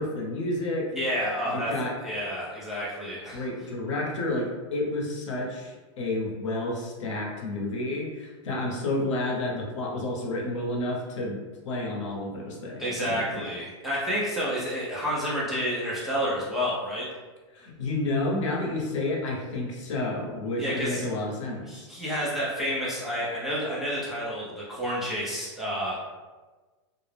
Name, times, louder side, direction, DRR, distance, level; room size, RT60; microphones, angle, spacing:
voice 1, 0.0-0.9 1.5-2.0 3.3-11.4 11.6-13.4 17.5-21.9, left 2 dB, 85° left, -1 dB, 0.8 m, -30 dB
voice 2, 0.9-1.7 2.0-3.4 12.8-17.1 20.6-21.0 21.7-26.1, equal, ahead, -8 dB, 0.6 m, -30 dB
2.4 x 2.0 x 3.2 m, 1.3 s
supercardioid pair, 160°, 15 cm